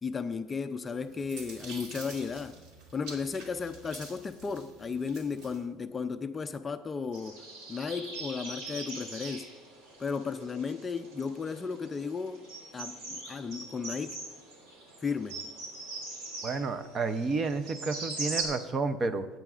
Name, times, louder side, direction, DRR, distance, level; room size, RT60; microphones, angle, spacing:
voice 1, 0.0-2.6 2.9-7.4 7.7-9.5 10.0-12.4 12.7-14.2 15.0-15.4, left 5 dB, 20° left, 8 dB, 0.4 m, -34 dB
sound 1, 0.9-5.6, right 3 dB, 65° right, 2.4 m, -48 dB
sound 2, 7.1-18.4, right 3 dB, 85° right, 3.8 m, -41 dB
voice 2, 16.4-19.3, right 4 dB, 30° right, 11 dB, 0.6 m, -31 dB
21.5 x 9.0 x 2.4 m, 1.3 s
cardioid pair, 150°, 0 cm